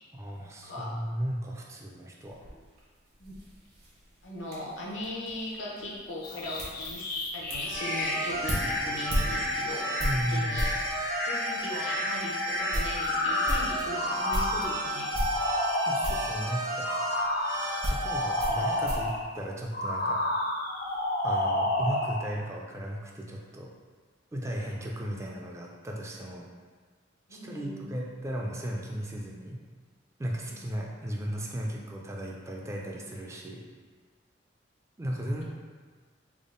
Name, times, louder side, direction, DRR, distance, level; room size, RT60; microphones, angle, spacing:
voice 1, 0.1-2.4 10.0-10.6 15.9-16.9 17.8-20.2 21.2-23.7 24.3-26.5 27.3-29.6 30.2-33.6 35.0-35.4, equal, 15° right, -1 dB, 0.3 m, -35 dB
sound 1, 2.2-10.9 11.6-11.7 12.1-12.2 12.5-14.7 15.1-15.8 16.0-16.4 17.2-20.1 20.4-21.0, equal, 55° right, 0.9 m, -35 dB
voice 2, 4.2-10.7 11.2-15.1 27.3-27.9 30.5-30.6, left 1 dB, 85° left, -3 dB, 0.7 m, -39 dB
sound 2, 6.2-16.4 16.8-19.3 19.7-22.3, left 1 dB, 50° left, 0.4 m, -31 dB
sound 3, 7.6-18.7, right 1 dB, 90° right, 1.3 m, -34 dB
3.5 x 2.1 x 3.7 m, 1.5 s
head